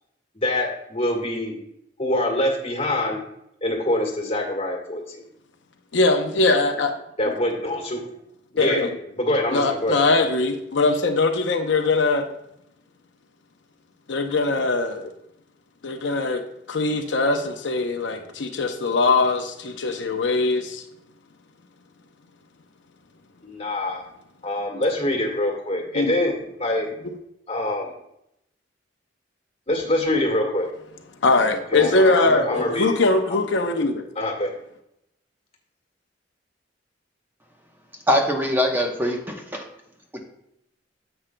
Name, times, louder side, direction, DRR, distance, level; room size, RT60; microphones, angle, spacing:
voice 1, 0.3-1.5 2.0-3.2 3.6-5.2 7.2-8.0 8.5-8.9 9.2-10.3 23.4-24.0 24.4-26.9 27.5-27.9 29.7-30.7 31.7-33.0 34.1-34.5, left 1 dB, 35° left, 1 dB, 1.5 m, -25 dB
voice 2, 5.9-6.9 8.6-8.9 9.5-12.2 14.1-15.1 15.8-16.4 16.7-20.8 25.9-26.2 31.2-34.0, left 3 dB, 70° left, 5 dB, 0.7 m, -21 dB
voice 3, 38.1-39.6 40.1-40.2, equal, 10° right, 1 dB, 0.9 m, -22 dB
9.8 x 7.9 x 2.2 m, 0.79 s
head